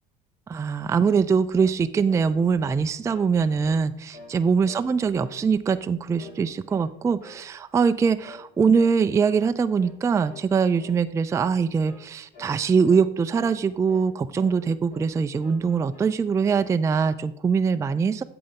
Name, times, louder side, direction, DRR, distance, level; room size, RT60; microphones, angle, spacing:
voice 1, 0.5-18.2, right 5 dB, 15° right, 11 dB, 0.3 m, -23 dB
sound 1, 1.1-1.3 1.6-1.8 2.1-3.3 3.6-3.9 4.1-4.4 4.6-4.9 5.2-5.9 6.2-6.9 7.2-7.4 7.7-7.9 8.2-8.5 8.7-9.0 9.3-9.5 9.8-10.0 10.3-10.5 10.8-11.0 11.3-11.5 11.8-12.1 12.3-12.6 12.8-13.0 13.4-14.1 14.4-15.1 15.4-16.1 16.4-17.2, left 3 dB, 40° left, 2.5 m, -46 dB
8.7 x 6.8 x 3.6 m, 0.75 s
supercardioid pair, 80°, 20 cm